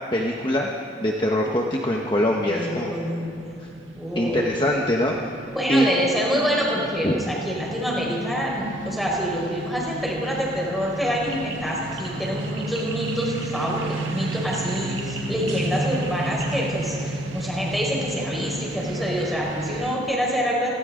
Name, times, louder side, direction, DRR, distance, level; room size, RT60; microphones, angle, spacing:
voice 1, 0.1-0.7 1.0-2.9 3.6-3.7 4.1-5.2 5.7-5.8 7.0-7.3, equal, 25° left, -1 dB, 1.2 m, -23 dB
sound 1, 2.0-20.0, right 2 dB, 85° right, 1.6 m, -33 dB
voice 2, 2.5-3.6 4.0-4.7 5.5-20.7, equal, ahead, -4 dB, 4.8 m, -26 dB
sound 2, 11.0-17.0, right 3 dB, 70° right, 3.1 m, -40 dB
29.5 x 23.0 x 3.9 m, 2.7 s
head